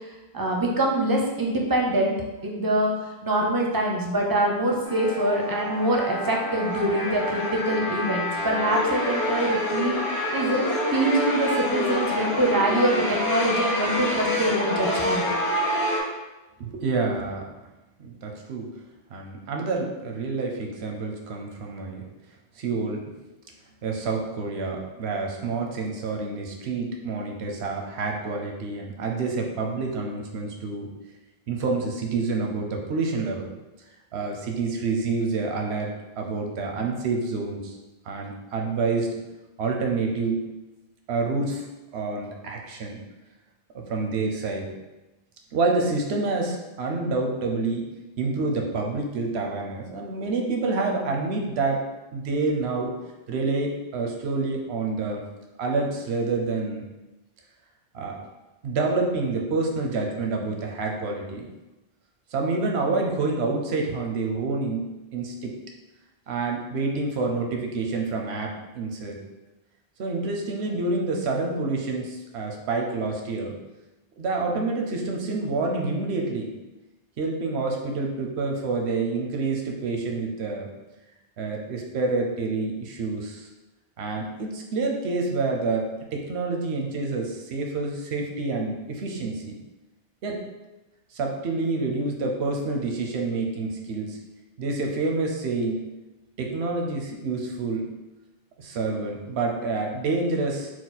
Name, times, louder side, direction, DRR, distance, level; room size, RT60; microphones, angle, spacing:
voice 1, 0.3-2.1 2.4-2.9 3.2-10.0 10.3-10.6 10.9-15.2, right 1 dB, 30° right, 0 dB, 0.4 m, -24 dB
sound 1, 4.8-16.0, left 1 dB, 80° left, 1.2 m, -27 dB
voice 2, 16.6-17.4 18.0-18.7 19.1-22.0 22.6-23.1 23.8-30.9 31.5-33.5 34.1-37.8 38.1-39.2 39.6-40.4 41.1-41.6 41.9-43.0 43.7-44.7 45.5-47.9 48.2-51.8 52.1-52.9 53.3-55.2 55.6-56.9 57.9-58.2 58.6-61.5 62.3-65.5 66.3-69.2 70.0-73.6 74.2-76.5 77.2-80.7 81.4-83.5 84.0-89.6 90.2-90.4 91.1-94.2 94.6-95.8 96.4-97.9 98.6-100.7, right 3 dB, 90° right, 1 dB, 0.9 m, -28 dB
4.6 x 2.1 x 4.0 m, 1.1 s
omnidirectional pair, 1.0 m